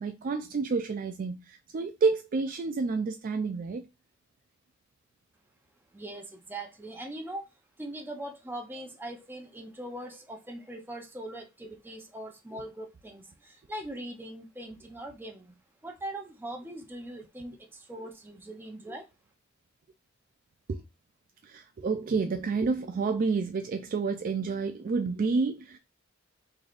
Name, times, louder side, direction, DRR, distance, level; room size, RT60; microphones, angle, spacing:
voice 1, 0.0-3.8 20.7-20.8 21.4-25.8, right 4 dB, 40° right, 0.3 m, -29 dB
voice 2, 5.9-7.5 7.8-15.5 15.8-19.1, right 1 dB, 10° right, 0.7 m, -41 dB
3.8 x 3.3 x 2.4 m
head